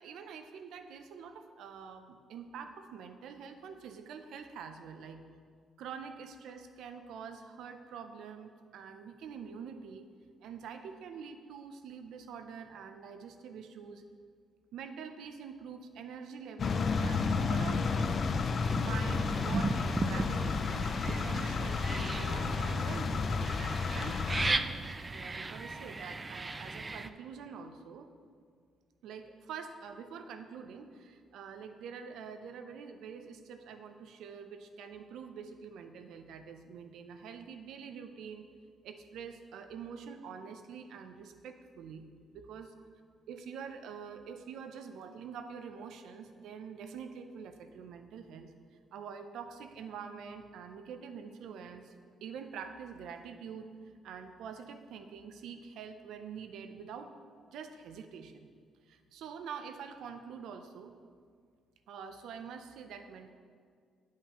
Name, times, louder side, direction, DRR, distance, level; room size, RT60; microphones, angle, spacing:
voice 1, 0.0-5.2 5.8-10.1 10.4-14.0 14.7-18.2 18.8-23.4 23.9-24.7 25.1-28.1 29.0-38.5 38.8-42.0 42.3-42.7 43.3-48.5 48.9-51.9 52.2-53.7 54.0-57.1 57.5-58.5 58.9-61.0 61.9-63.3, right 6 dB, 80° right, 7 dB, 0.5 m, -46 dB
sound 1, 16.6-24.5, left 4 dB, 50° left, 0.4 m, -31 dB
sound 2, 18.6-27.1, right 3 dB, 25° right, 0.3 m, -37 dB
10.0 x 5.6 x 2.9 m, 2.1 s
cardioid pair, 90°, 0 cm